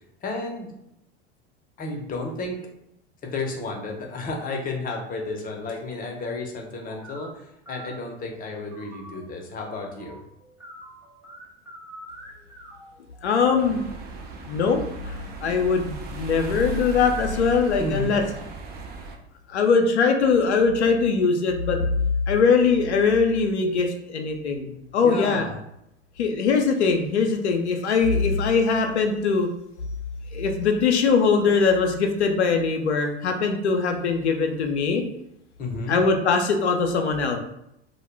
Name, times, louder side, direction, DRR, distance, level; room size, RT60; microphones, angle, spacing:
voice 1, 0.2-0.7 1.8-2.6 3.2-10.2 17.8-18.2 25.0-25.6 35.6-36.0, left 2 dB, 25° left, 1 dB, 0.6 m, -32 dB
sound 1, 6.8-7.2 7.6-7.9 8.5-13.7, right 1 dB, 10° right, 0.9 m, -46 dB
voice 2, 13.2-13.8 14.5-18.2 19.5-21.9 22.3-25.5 26.2-29.5 30.3-35.0 35.9-37.4, left 5 dB, 85° left, 4 dB, 0.5 m, -21 dB
sound 2, 13.6-19.2, right 2 dB, 30° right, 0.4 m, -37 dB
2.2 x 2.1 x 3.1 m, 0.79 s
hypercardioid pair, 80°, 33 cm